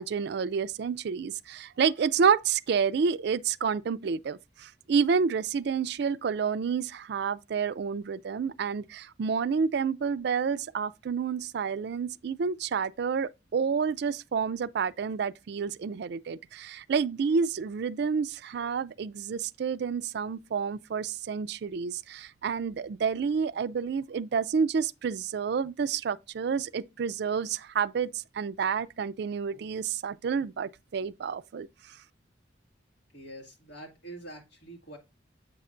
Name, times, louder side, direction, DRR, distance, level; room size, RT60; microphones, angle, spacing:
voice 1, 0.0-32.0, right 6 dB, 60° right, 0.4 m, -29 dB
voice 2, 33.1-35.0, right 1 dB, 65° left, 2.1 m, -45 dB
7.7 x 5.5 x 2.5 m
head